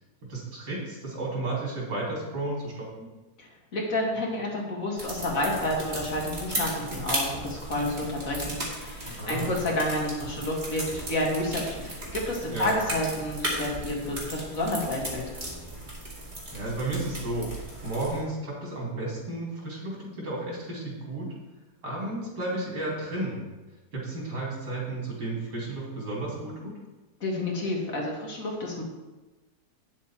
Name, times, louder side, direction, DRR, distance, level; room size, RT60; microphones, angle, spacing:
voice 1, 0.3-3.1 9.2-9.5 12.5-12.7 16.5-17.5 17.8-21.3 21.8-23.4 23.9-26.7, right 2 dB, 85° right, -4 dB, 3.6 m, -33 dB
voice 2, 3.4-15.4 27.2-28.8, left 1 dB, 55° left, -2 dB, 2.2 m, -30 dB
sound 1, 5.0-18.2, right 1 dB, 25° right, 2.4 m, -36 dB
9.0 x 7.3 x 4.4 m, 1.2 s
omnidirectional pair, 1.8 m